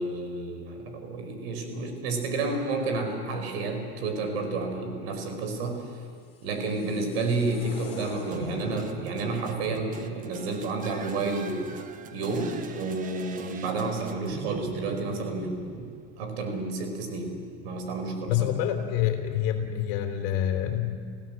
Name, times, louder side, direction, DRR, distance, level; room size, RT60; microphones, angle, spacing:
voice 1, 0.0-6.0 6.4-11.7 12.1-15.8 16.2-17.4 17.6-18.5, right 3 dB, 85° right, 5 dB, 5.2 m, -30 dB
sound 1, 5.9-9.1, left 4 dB, 20° left, 4.3 m, -48 dB
sound 2, 8.3-16.5, right 6 dB, 25° right, 1.2 m, -42 dB
voice 2, 18.3-21.0, left 10 dB, 65° left, 5 dB, 3.5 m, -27 dB
29.5 x 16.0 x 7.7 m, 2.3 s
supercardioid pair, 150°, 30 cm